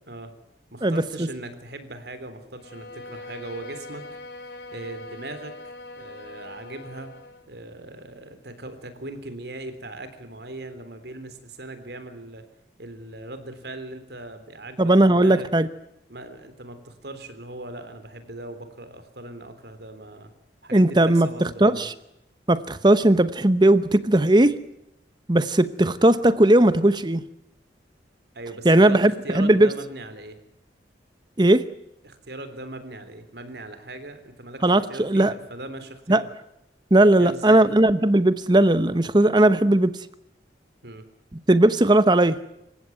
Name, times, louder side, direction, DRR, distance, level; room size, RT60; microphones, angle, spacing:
voice 1, 0.7-4.1 4.7-5.6 6.0-7.1 7.5-12.5 12.8-15.5 16.1-20.3 20.6-21.9 28.3-30.4 32.0-36.3 37.2-37.7 40.8-41.0, right 2 dB, 65° right, 10 dB, 3.5 m, -39 dB
Bowed string instrument, 2.5-7.5, left 2 dB, 70° left, 2.7 m, -41 dB
voice 2, 14.8-15.7 20.7-21.9 22.5-24.5 25.3-27.2 28.6-29.7 31.4-31.7 34.6-35.3 36.1-36.2 36.9-40.0 41.5-42.4, right 1 dB, 25° right, 14 dB, 0.9 m, -18 dB
27.0 x 15.5 x 9.4 m, 0.83 s
head